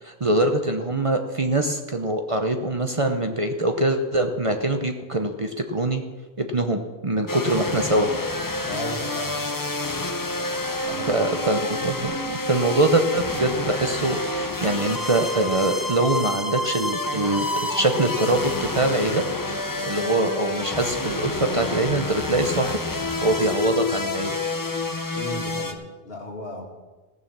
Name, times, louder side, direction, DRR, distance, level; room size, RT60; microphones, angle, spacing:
voice 1, 0.0-6.0 6.4-8.1 11.1-12.1 12.4-19.2 19.8-22.8 23.2-24.4, right 2 dB, 35° right, 6 dB, 0.8 m, -23 dB
sound 1, 7.3-25.7, left 2 dB, 20° left, 0.8 m, -28 dB
voice 2, 8.6-9.6 10.9-11.3 25.1-26.7, left 1 dB, 65° left, 1 dB, 2.4 m, -35 dB
16.0 x 6.7 x 7.3 m, 1.2 s
omnidirectional pair, 1.1 m